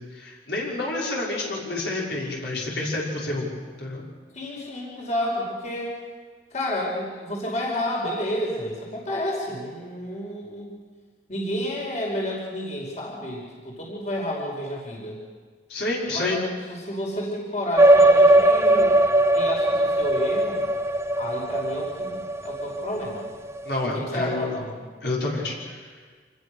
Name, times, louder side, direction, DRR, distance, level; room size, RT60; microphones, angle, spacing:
voice 1, 0.1-3.5 3.8-4.0 15.7-16.4 23.6-24.6 25.0-25.9, left 2 dB, 70° left, -4 dB, 5.9 m, -28 dB
voice 2, 4.3-6.0 6.5-10.7 11.3-15.2 16.1-16.4 16.7-19.0 19.3-20.7 21.2-23.2 23.9-24.7, left 1 dB, 40° left, -2 dB, 5.3 m, -30 dB
sound 1, 17.8-23.7, right 1 dB, 15° right, 0.7 m, -19 dB
27.0 x 21.0 x 6.7 m, 1.5 s
head